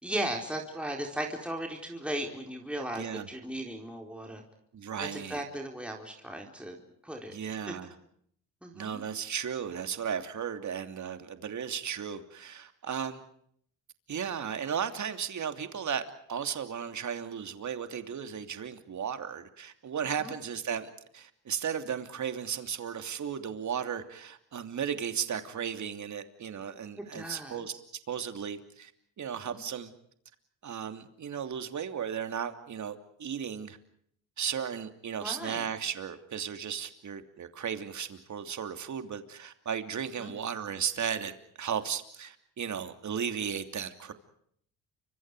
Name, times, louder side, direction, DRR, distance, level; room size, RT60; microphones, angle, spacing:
voice 1, 0.0-4.4 5.0-6.8 7.0-7.3 7.7-7.8 8.6-9.0 20.2-20.3 27.0-27.8 29.4-29.6 35.2-35.7 40.2-40.3, right 1 dB, 5° right, 1 dB, 4.3 m, -37 dB
voice 2, 2.9-3.3 4.7-5.4 7.3-7.9 8.7-13.2 14.1-16.0 16.3-27.7 28.1-28.9 29.2-29.9 30.6-33.8 34.4-41.3 41.6-44.1, right 7 dB, 50° right, 8 dB, 2.9 m, -35 dB
30.0 x 25.5 x 4.9 m, 0.67 s
cardioid pair, 90°, 37 cm